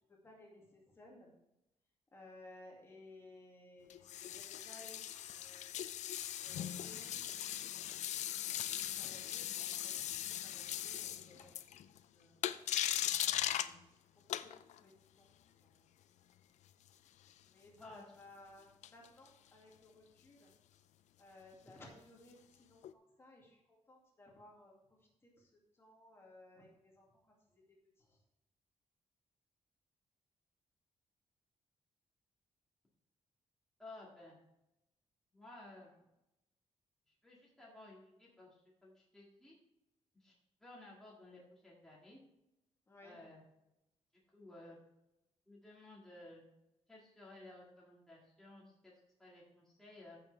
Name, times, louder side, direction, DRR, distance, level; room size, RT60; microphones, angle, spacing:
voice 1, 0.1-1.3 2.1-5.7 6.4-8.1 8.5-10.1 10.4-11.8 12.1-12.4 13.0-13.8 14.4-14.5 14.8-15.3 15.6-15.7 17.4-20.5 21.2-27.6 28.0-28.2 42.9-43.2, left 2 dB, 20° left, -2 dB, 2.2 m, -59 dB
sound 1, 3.9-12.0 12.4-13.7 14.3-14.8 18.8-19.3 22.8-22.9, left 11 dB, 80° left, 0.5 m, -39 dB
voice 2, 33.8-34.4 35.3-35.9 37.1-39.5 40.1-40.3 40.6-42.2 43.0-43.4 44.3-44.8 45.5-46.4 46.9-48.9 49.2-50.2, left 2 dB, 5° left, -5 dB, 2.0 m, -55 dB
14.5 x 6.5 x 3.3 m, 0.88 s
wide cardioid pair, 175°, 12 cm